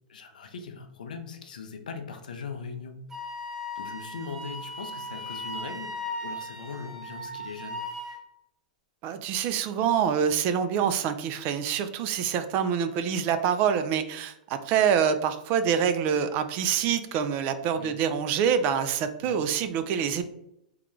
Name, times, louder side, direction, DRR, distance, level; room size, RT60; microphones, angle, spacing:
voice 1, 0.1-3.1 3.8-7.8 17.7-18.0 19.2-19.4, left 5 dB, 80° left, 6 dB, 0.5 m, -40 dB
Wind instrument woodwind instrument, 3.1-8.2, left 1 dB, 10° right, 0.7 m, -37 dB
voice 2, 9.0-20.2, right 8 dB, 40° right, 10 dB, 0.4 m, -26 dB
3.7 x 2.3 x 3.0 m, 0.80 s
hypercardioid pair, 115°, 4 cm